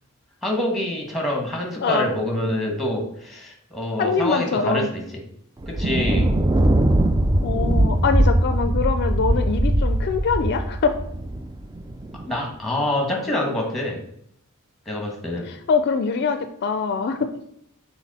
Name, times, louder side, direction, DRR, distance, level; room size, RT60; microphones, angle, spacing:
voice 1, 0.4-5.0 5.7-6.3 12.2-14.0 14.9-15.5, left 1 dB, ahead, 0 dB, 1.3 m, -26 dB
voice 2, 1.8-2.1 4.0-4.9 7.4-11.0 15.5-17.3, left 5 dB, 50° left, 8 dB, 0.4 m, -23 dB
Thunder, 5.6-12.3, right 1 dB, 15° right, 0.4 m, -21 dB
6.1 x 3.9 x 4.1 m, 0.73 s
head